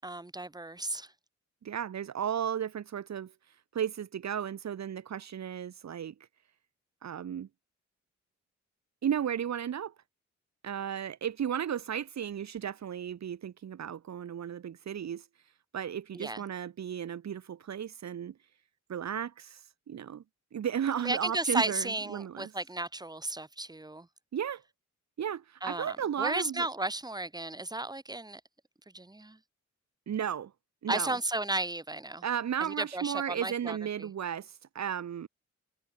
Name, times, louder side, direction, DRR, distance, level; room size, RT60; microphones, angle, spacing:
voice 1, 0.0-1.1 16.1-16.4 21.0-24.1 25.6-28.4 28.9-29.4 30.9-32.2 32.6-34.1, right 2 dB, 15° right, 7.3 m, -34 dB
voice 2, 1.6-3.3 3.7-6.1 7.0-7.5 9.0-9.9 10.6-15.3 15.7-18.3 18.9-20.2 20.5-22.5 24.3-24.6 25.2-26.7 30.1-30.5 30.8-31.2 32.2-35.3, right 9 dB, 65° right, 2.4 m, -34 dB
wide cardioid pair, 130°, 29 cm